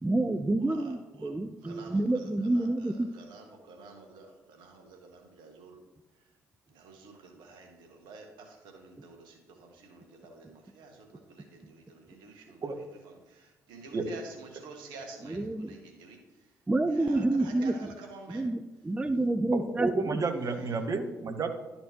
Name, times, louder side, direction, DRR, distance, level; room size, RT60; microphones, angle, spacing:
voice 1, 0.0-3.1 15.2-15.7 16.7-17.9 18.3-20.2, right 2 dB, 15° right, 9 dB, 0.5 m, -28 dB
voice 2, 0.6-1.3 1.6-5.8 6.7-12.7 13.0-16.5 16.9-18.5 20.5-20.7, right 3 dB, 70° right, 2 dB, 1.4 m, -50 dB
voice 3, 19.8-21.5, right 4 dB, 45° right, 6 dB, 1.2 m, -30 dB
12.0 x 4.3 x 2.9 m, 1.0 s
hypercardioid pair, 45°, 8 cm